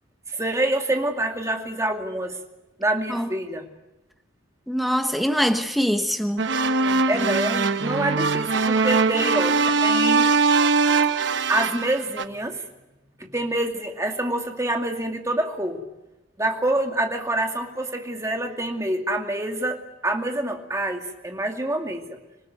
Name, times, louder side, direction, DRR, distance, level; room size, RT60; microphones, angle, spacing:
voice 1, 0.3-2.4 2.8-3.7 7.1-10.3 11.5-12.6 13.2-15.8 16.4-22.2, right 1 dB, 15° right, 2.4 m, -26 dB
voice 2, 4.7-6.5, equal, ahead, 1.3 m, -23 dB
sound 1, 6.4-12.2, right 4 dB, 65° right, 1.1 m, -21 dB
26.5 x 19.0 x 9.3 m
head